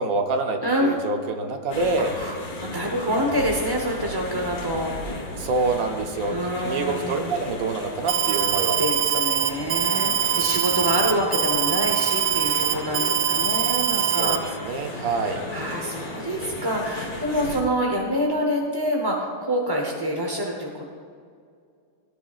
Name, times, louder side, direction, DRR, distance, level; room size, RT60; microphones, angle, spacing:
voice 1, 0.0-2.1 5.4-8.8 9.3-9.6 14.2-15.4, right 3 dB, 60° right, 5 dB, 1.1 m, -26 dB
voice 2, 0.6-0.9 2.0-4.9 5.4-5.5 6.3-7.4 8.8-14.4 14.7-20.9, equal, 30° right, 0 dB, 0.4 m, -27 dB
sound 1, 1.7-17.6, left 2 dB, 55° left, 1.8 m, -35 dB
Alarm, 8.1-14.4, right 9 dB, 80° right, 1.3 m, -23 dB
17.0 x 10.0 x 2.4 m, 2.2 s
omnidirectional pair, 2.0 m